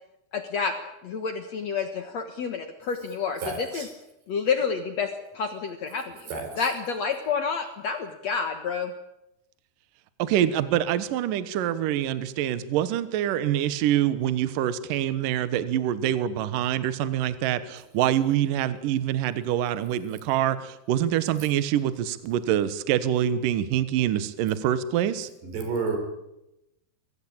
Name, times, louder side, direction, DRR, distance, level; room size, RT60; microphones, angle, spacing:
voice 1, 0.3-0.7 1.0-3.4 3.7-3.8 4.3-5.1 5.3-6.0 6.6-8.9, left 5 dB, 60° left, 7 dB, 1.9 m, -29 dB
voice 2, 3.4-3.9 6.3-6.7 25.4-26.0, right 4 dB, 85° right, 5 dB, 6.7 m, -30 dB
voice 3, 10.2-25.3, right 11 dB, 65° right, 14 dB, 2.5 m, -25 dB
23.5 x 17.5 x 8.8 m, 0.88 s
omnidirectional pair, 4.8 m